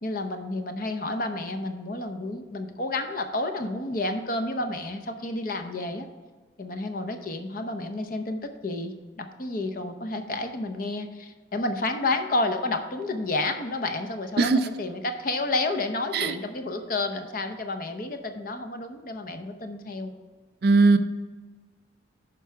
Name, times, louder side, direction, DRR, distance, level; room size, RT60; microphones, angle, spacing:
voice 1, 0.0-6.1 6.6-20.1, left 2 dB, 45° left, 7 dB, 0.7 m, -30 dB
voice 2, 20.6-21.0, right 3 dB, 55° right, 10 dB, 0.5 m, -19 dB
11.0 x 4.6 x 4.6 m, 1.4 s
head